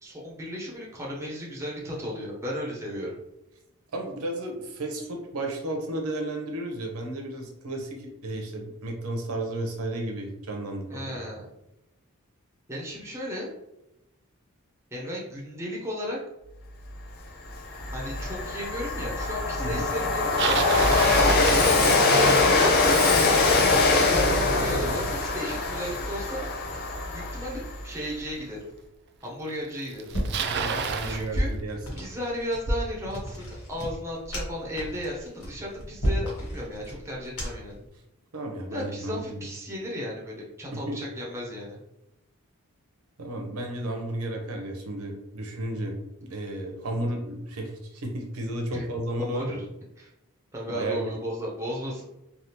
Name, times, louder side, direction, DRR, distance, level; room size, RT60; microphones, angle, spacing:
voice 1, 0.0-3.1 10.9-11.5 12.7-13.5 14.9-16.2 17.9-20.6 21.2-23.3 23.7-26.5 27.1-28.6 29.2-30.1 31.0-31.5 32.0-37.8 38.7-41.8 48.7-48.8 49.2-49.6 50.0-50.1 50.5-52.0, equal, 10° right, -3 dB, 0.6 m, -35 dB
voice 2, 3.9-11.3 19.6-19.9 30.6-32.1 38.3-39.5 40.7-41.0 43.2-49.6 50.7-51.2, right 1 dB, 75° right, 2 dB, 0.7 m, -33 dB
Train, 17.0-17.1 17.5-27.9, left 3 dB, 45° left, 0.5 m, -23 dB
Bicycle, 20.0-22.4 27.4-27.5 28.4-28.5 29.5-29.6 29.8-31.2, right 6 dB, 50° right, 0.3 m, -30 dB
sound 1, 30.1-37.8, equal, 90° left, 1.2 m, -32 dB
3.4 x 2.4 x 2.8 m, 0.89 s
head